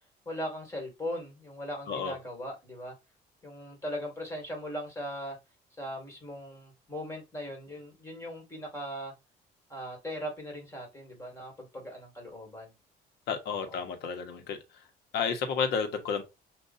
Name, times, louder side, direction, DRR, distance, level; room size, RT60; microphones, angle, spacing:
voice 1, 0.3-2.9 3.4-5.4 5.8-9.1 9.7-12.7 13.5-13.8, equal, 15° left, 2.4 m, -39 dB
voice 2, 13.3-14.6 15.1-16.2, left 6 dB, 75° left, 1.2 m, -31 dB
6.6 x 2.6 x 2.7 m
cardioid pair, 110°, 17 cm